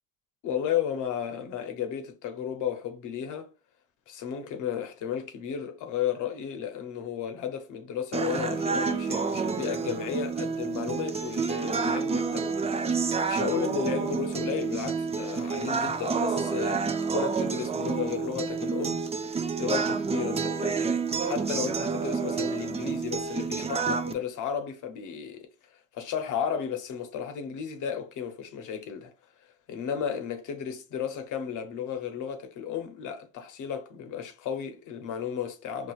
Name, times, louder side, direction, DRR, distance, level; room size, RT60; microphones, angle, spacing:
voice 1, 0.4-3.5 4.1-12.6 13.3-19.0 19.6-25.5 25.9-29.1 29.7-35.9, left 8 dB, 85° left, 0.7 m, -33 dB
sound 1, 8.1-24.1, right 5 dB, 20° right, 0.3 m, -29 dB
4.1 x 2.3 x 2.4 m
cardioid pair, 90°, 30 cm